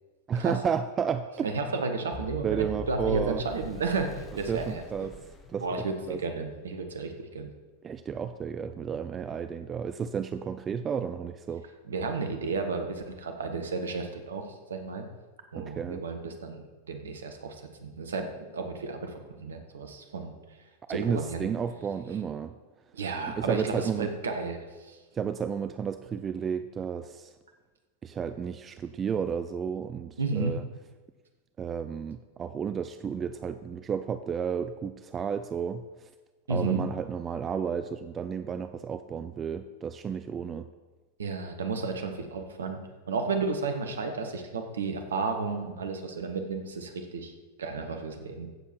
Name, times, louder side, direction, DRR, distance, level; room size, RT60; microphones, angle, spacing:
voice 1, 0.3-1.5 2.4-3.4 4.5-5.2 5.5-6.2 7.8-11.6 15.6-16.0 20.9-22.5 23.4-24.1 25.1-27.3 28.0-30.6 31.6-36.1 36.5-40.7, right 7 dB, 25° right, 11 dB, 0.4 m, -32 dB
voice 2, 1.4-5.1 5.6-7.5 11.9-14.4 14.7-15.0 15.5-18.3 18.5-20.3 20.9-21.5 22.9-25.0 30.2-30.6 36.5-36.8 41.2-42.8 43.1-47.3 47.6-48.5, right 4 dB, 65° right, 5 dB, 1.5 m, -32 dB
sound 1, 2.1-6.2, left 2 dB, 20° left, 1.3 m, -43 dB
15.5 x 7.2 x 4.6 m, 1.3 s
figure-of-eight pair, 90°, 0 cm